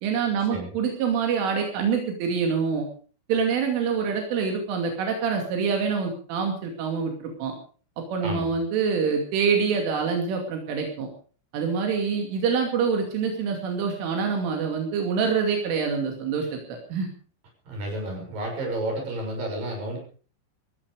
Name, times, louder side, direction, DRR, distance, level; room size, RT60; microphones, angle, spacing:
voice 1, 0.0-2.9 3.3-7.5 8.1-11.1 11.5-17.1, right 6 dB, 85° right, 2 dB, 5.1 m, -26 dB
voice 2, 17.7-20.0, right 1 dB, 45° right, 1 dB, 8.0 m, -31 dB
19.0 x 15.0 x 5.0 m, 0.41 s
omnidirectional pair, 5.5 m